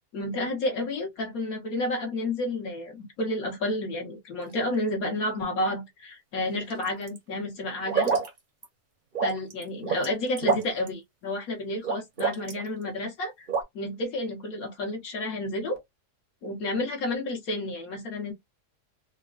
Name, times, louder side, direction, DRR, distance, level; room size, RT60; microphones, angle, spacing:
voice 1, 0.1-8.1 9.2-13.5 13.7-15.8 16.4-18.3, left 1 dB, 60° left, 1.5 m, -31 dB
sound 1, 6.5-7.2 7.8-8.3 8.6-8.7 9.1-10.1 10.4-10.9 11.8-12.6 13.5-13.6, right 5 dB, 40° right, 0.8 m, -27 dB
4.1 x 2.2 x 2.4 m
omnidirectional pair, 1.7 m